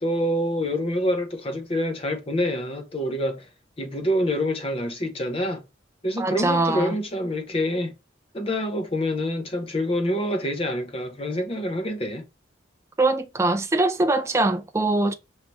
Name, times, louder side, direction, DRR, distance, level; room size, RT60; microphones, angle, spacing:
voice 1, 0.0-3.5 3.8-5.6 6.0-7.9 8.3-12.2, equal, 30° left, 0.7 m, -26 dB
voice 2, 6.2-7.0 13.0-15.1, right 2 dB, 15° right, 0.4 m, -22 dB
5.7 x 3.2 x 2.9 m
head